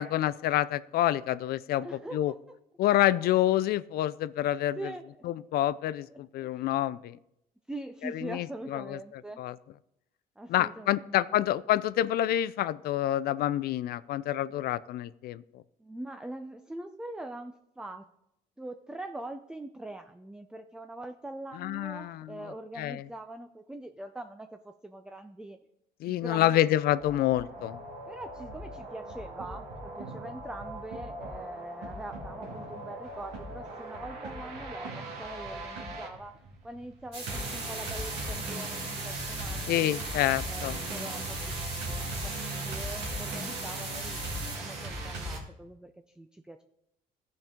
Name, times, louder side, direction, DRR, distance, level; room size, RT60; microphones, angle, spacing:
voice 1, 0.0-1.9 2.1-2.3 2.8-4.8 5.2-7.2 8.0-8.5 8.7-9.0 9.4-9.6 10.5-15.4 21.6-23.0 26.0-27.8 39.7-40.8, left 13 dB, 65° left, 17 dB, 0.4 m, -27 dB
voice 2, 1.8-2.6 4.8-5.0 6.1-6.7 7.7-9.4 10.4-11.2 15.8-18.1 18.6-25.6 26.0-26.7 28.1-39.7 40.5-44.2 44.6-46.6, right 1 dB, 5° right, 7 dB, 0.4 m, -43 dB
sound 1, 26.7-45.4, right 1 dB, 90° right, 2.3 m, -39 dB
sound 2, 37.1-44.6, right 2 dB, 35° right, 2.6 m, -39 dB
14.5 x 5.3 x 3.6 m, 0.81 s
cardioid pair, 110°, 17 cm